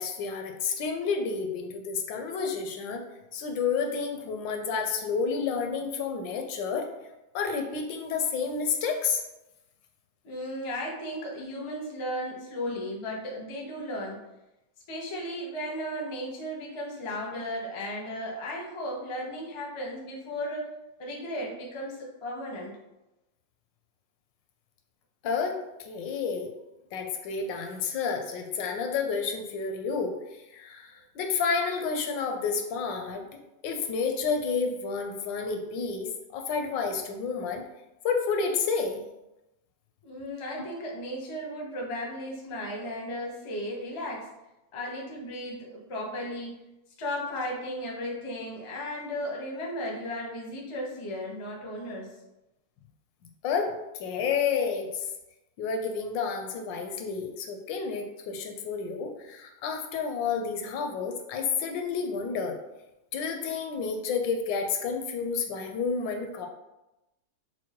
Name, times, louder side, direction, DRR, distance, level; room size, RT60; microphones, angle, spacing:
voice 1, 0.0-3.0 3.3-6.9 7.3-9.2 25.2-26.5 26.9-30.2 30.5-37.6 38.0-39.0 40.6-40.7 53.4-55.1 55.6-62.6 63.1-66.5, left 5 dB, 85° left, 4 dB, 1.3 m, -30 dB
voice 2, 10.2-14.2 14.9-20.7 21.0-22.8 40.0-44.3 44.7-46.6 47.0-52.1, equal, 35° left, -2 dB, 0.4 m, -35 dB
6.1 x 2.2 x 2.9 m, 0.96 s
omnidirectional pair, 2.0 m